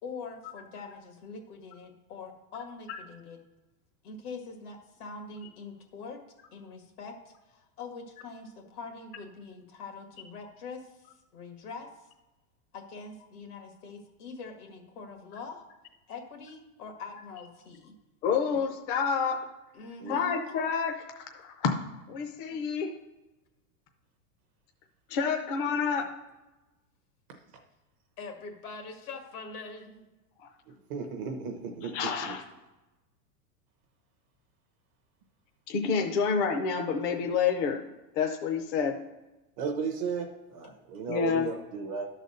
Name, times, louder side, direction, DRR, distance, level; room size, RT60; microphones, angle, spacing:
voice 1, 0.0-3.4 4.0-6.2 6.5-11.1 11.3-12.0 12.7-15.7 16.1-18.0 19.7-20.4 22.5-22.6 25.7-25.8 28.2-30.1, left 4 dB, 75° left, 3 dB, 2.0 m, -43 dB
voice 2, 18.2-19.5 20.1-21.7 22.1-22.9 25.1-26.1 30.4-30.5 31.9-32.4 35.7-37.8 38.1-39.0 41.1-41.5, left 6 dB, 35° left, 4 dB, 0.6 m, -28 dB
voice 3, 30.9-32.4 39.6-42.1, right 5 dB, 25° right, 3 dB, 0.5 m, -35 dB
12.0 x 4.1 x 6.4 m, 1.1 s
supercardioid pair, 170°, 45 cm